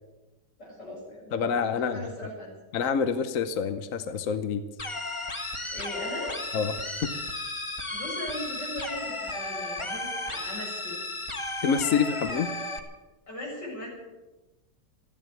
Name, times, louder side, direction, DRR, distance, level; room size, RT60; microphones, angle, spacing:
voice 1, 0.6-2.5 5.7-6.4 7.9-10.9 13.3-13.9, left 1 dB, 85° left, -3 dB, 7.7 m, -39 dB
voice 2, 1.3-2.1 2.7-4.6 6.5-6.7 11.6-12.5, left 6 dB, 55° left, 10 dB, 1.2 m, -27 dB
sound 1, 4.8-12.8, left 2 dB, 20° left, 1.3 m, -34 dB
14.5 x 11.0 x 9.1 m, 1.1 s
omnidirectional pair, 1.8 m